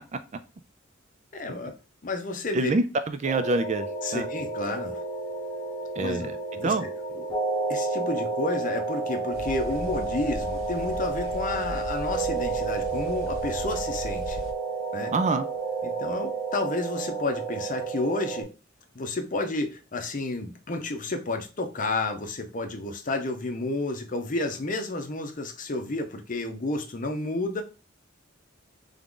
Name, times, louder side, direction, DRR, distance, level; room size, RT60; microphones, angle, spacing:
voice 1, 1.3-1.7 2.0-2.7 4.0-5.0 6.0-6.9 7.2-7.3 7.7-14.4 14.9-15.1 15.8-18.5 18.9-27.6, left 2 dB, 40° left, 0.7 m, -31 dB
voice 2, 2.5-4.3 6.0-6.4 6.6-6.9 15.1-15.5, right 3 dB, 35° right, 0.4 m, -25 dB
sound 1, 3.2-18.4, right 3 dB, 20° left, 1.3 m, -31 dB
sound 2, 9.3-14.5, left 2 dB, 80° left, 0.7 m, -38 dB
3.7 x 3.5 x 3.7 m
head